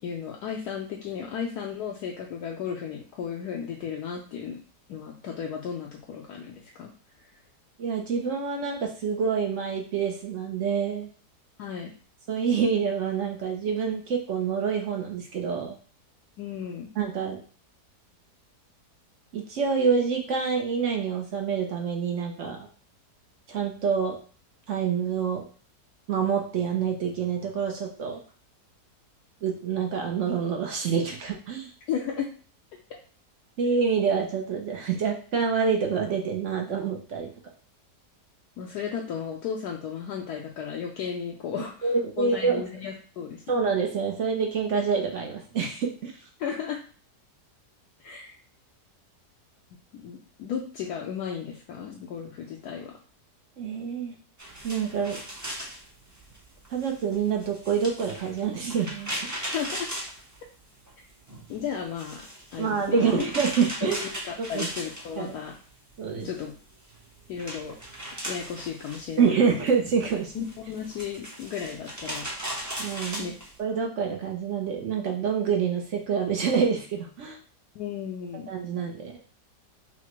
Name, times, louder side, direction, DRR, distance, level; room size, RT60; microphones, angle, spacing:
voice 1, 0.0-4.6 4.9-6.9 11.6-11.9 16.4-16.9 31.9-32.3 38.6-43.5 46.4-46.8 48.0-48.3 49.9-52.9 59.5-59.9 61.5-63.2 63.8-65.5 66.2-66.6 67.3-67.8 68.3-69.4 70.3-72.3 73.2-73.3 77.7-78.5, left 7 dB, 75° left, 0 dB, 1.0 m, -34 dB
voice 2, 7.8-11.1 12.3-15.8 17.0-17.4 19.3-22.6 23.5-24.2 24.7-25.4 26.1-28.2 29.4-31.7 33.6-37.3 41.8-42.6 43.5-46.1 53.6-54.1 54.6-55.2 56.7-59.1 62.6-64.0 64.4-64.7 65.2-65.4 66.0-66.3 69.2-70.5 72.8-77.4 78.5-79.2, right 6 dB, 60° right, 2 dB, 0.8 m, -27 dB
sound 1, 54.4-60.9 61.2-65.6 65.9-73.5, right 1 dB, 20° right, 0.5 m, -38 dB
5.7 x 2.1 x 3.0 m, 0.40 s
omnidirectional pair, 1.8 m